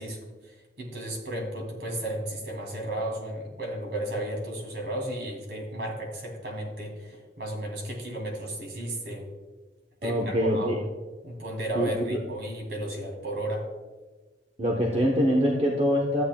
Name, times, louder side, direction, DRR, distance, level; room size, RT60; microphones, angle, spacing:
voice 1, 0.0-9.3 10.0-10.9 11.2-13.7, right 1 dB, 65° right, 0 dB, 2.6 m, -34 dB
voice 2, 10.0-10.8 11.7-12.2 14.6-16.2, equal, 35° right, -1 dB, 0.9 m, -24 dB
14.0 x 8.7 x 2.3 m, 1.3 s
head